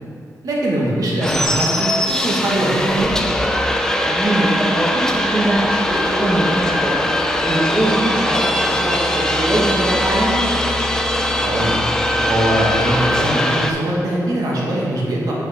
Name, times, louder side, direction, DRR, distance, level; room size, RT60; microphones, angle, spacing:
voice 1, 0.4-3.2 11.4-11.8 12.3-15.3, right 1 dB, 65° right, -4 dB, 1.7 m, -21 dB
sound 1, 1.2-13.7, left 1 dB, 10° left, 0.5 m, -20 dB
voice 2, 4.0-6.9 7.4-10.4, right 1 dB, 25° right, -9 dB, 1.3 m, -21 dB
7.7 x 5.4 x 4.3 m, 2.3 s
wide cardioid pair, 145°, 7 cm